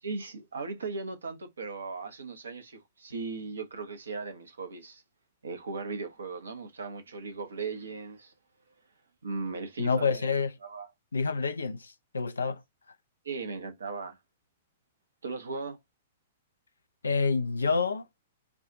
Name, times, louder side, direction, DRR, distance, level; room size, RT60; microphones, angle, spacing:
voice 1, 0.0-5.0 5.4-8.3 9.2-10.3 10.6-10.9 13.2-14.2 15.2-15.8, right 4 dB, 70° right, 0.9 m, -37 dB
voice 2, 9.8-10.5 11.1-12.6 17.0-18.0, left 4 dB, 70° left, 0.6 m, -28 dB
4.8 x 2.4 x 3.7 m
figure-of-eight pair, 110°, 0 cm